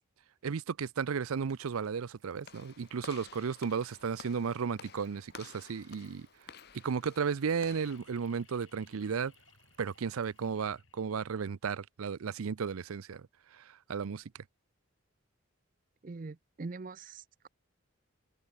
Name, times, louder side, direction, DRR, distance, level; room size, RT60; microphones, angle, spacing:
voice 1, 0.4-6.3 6.8-9.3 9.8-13.3 13.5-14.2, right 6 dB, 90° right, 0.5 m, -34 dB
Stream, 1.0-10.8, right 5 dB, 65° right, 4.2 m, -69 dB
Walk footsteps / Slam, 2.4-8.0, left 6 dB, 50° left, 0.9 m, -52 dB
sound 1, 7.7-11.4 13.1-13.2, left 7 dB, 65° left, 3.2 m, -63 dB
voice 2, 16.0-17.5, right 3 dB, 40° right, 0.5 m, -43 dB
head